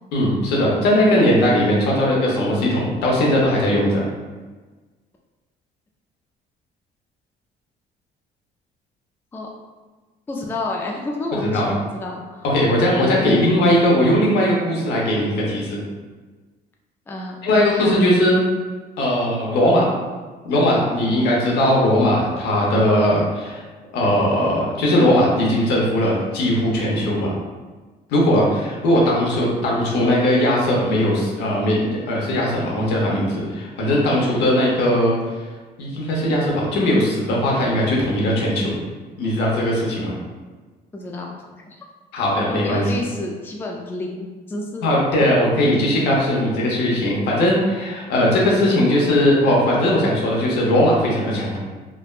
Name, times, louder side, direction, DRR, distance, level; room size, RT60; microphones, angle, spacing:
voice 1, 0.1-4.0 11.5-11.7 12.4-15.8 17.4-18.4 19.0-19.9 20.4-23.6 23.9-27.3 28.1-35.2 35.8-38.7 39.2-40.1 42.1-43.0 44.8-51.6, left 1 dB, 75° left, -3 dB, 0.8 m, -19 dB
voice 2, 10.3-12.4 13.2-13.5 17.1-18.0 34.2-34.5 40.9-41.3 41.7-41.8 42.5-44.9, left 2 dB, 15° left, -1 dB, 0.3 m, -29 dB
3.3 x 2.1 x 2.4 m, 1.3 s
cardioid pair, 110°, 17 cm